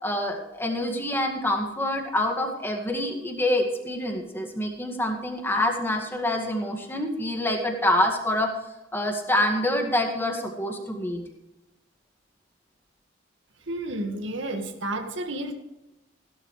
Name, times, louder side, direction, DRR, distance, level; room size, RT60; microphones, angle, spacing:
voice 1, 0.0-8.5 8.9-11.2, left 1 dB, 10° left, 2 dB, 2.0 m, -26 dB
voice 2, 13.7-15.5, right 1 dB, 80° right, 5 dB, 1.8 m, -31 dB
16.0 x 12.0 x 3.3 m, 0.96 s
head